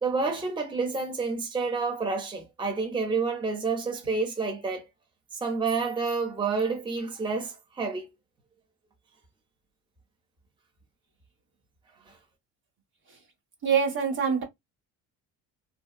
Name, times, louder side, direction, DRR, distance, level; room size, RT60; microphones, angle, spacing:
voice 1, 0.0-4.9 5.4-8.1 12.1-12.2, right 4 dB, 10° right, 0.7 m, -29 dB
voice 2, 13.6-14.4, right 6 dB, 70° right, 1.5 m, -24 dB
2.7 x 2.3 x 2.2 m
supercardioid pair, 90°, 38 cm